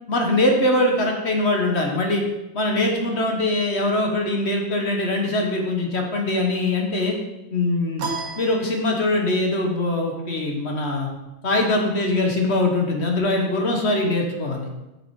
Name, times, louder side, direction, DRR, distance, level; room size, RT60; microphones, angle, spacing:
voice 1, 0.1-2.2 2.5-7.2 7.5-8.1 8.4-11.1 11.4-14.7, left 2 dB, 40° left, 1 dB, 1.2 m, -22 dB
sound 1, 8.0-9.4, right 4 dB, 70° right, 1.7 m, -33 dB
7.0 x 6.5 x 4.7 m, 0.98 s
omnidirectional pair, 2.0 m